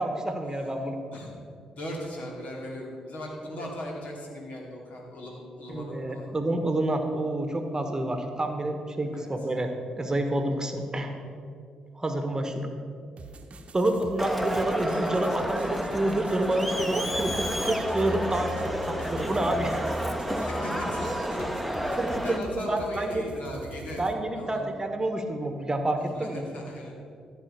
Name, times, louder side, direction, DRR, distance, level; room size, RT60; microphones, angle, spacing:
voice 1, 0.0-1.0 5.7-11.1 11.9-12.7 13.7-19.9 22.0-23.3 24.0-26.4, right 1 dB, 20° right, 6 dB, 1.3 m, -28 dB
voice 2, 1.8-6.3 9.1-9.3 20.0-21.9 22.2-24.0 24.3-24.7 26.1-26.9, left 1 dB, 55° left, -1 dB, 2.6 m, -38 dB
sound 1, 13.2-24.1, right 3 dB, 45° right, 0.9 m, -46 dB
Crowd, 14.2-22.4, equal, ahead, 1.1 m, -30 dB
14.5 x 5.3 x 6.7 m, 2.3 s
figure-of-eight pair, 40°, 3 cm